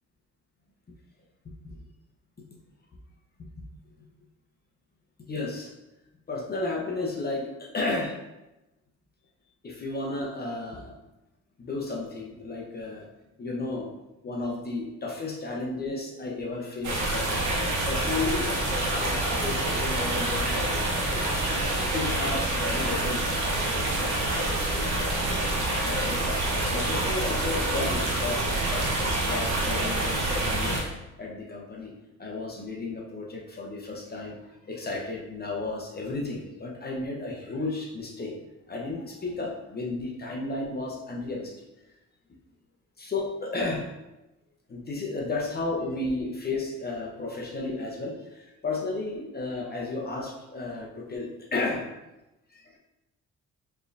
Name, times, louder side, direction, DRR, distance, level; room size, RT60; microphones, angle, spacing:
voice 1, 5.3-5.7 6.3-8.2 9.6-11.0 11.6-13.1 13.4-13.9 14.2-18.5 18.9-25.4 25.9-26.3 26.7-30.8 31.2-31.9 32.2-38.3 38.7-41.6 43.0-43.9 44.7-51.9 52.5-52.8, left 3 dB, 30° left, -2 dB, 0.8 m, -33 dB
sound 1, 16.8-30.8, right 1 dB, 80° right, 1.1 m, -27 dB
4.6 x 3.3 x 2.6 m, 0.98 s
cardioid pair, 90°, 30 cm